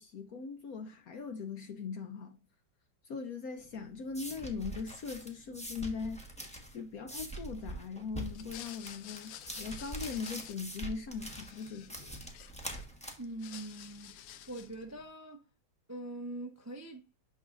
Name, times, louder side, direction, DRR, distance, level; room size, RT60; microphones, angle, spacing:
voice 1, 0.0-2.4 3.0-6.2 6.7-12.0, left 5 dB, 65° left, 1.0 m, -40 dB
sound 1, 3.6-15.0, right 1 dB, 5° left, 1.0 m, -44 dB
sound 2, 8.3-10.9 11.2-12.9 13.2-14.8, left 11 dB, 80° left, 1.4 m, -50 dB
voice 2, 13.2-14.2 14.5-15.5 15.9-17.2, right 1 dB, 20° right, 0.4 m, -43 dB
9.2 x 6.3 x 2.5 m
omnidirectional pair, 2.1 m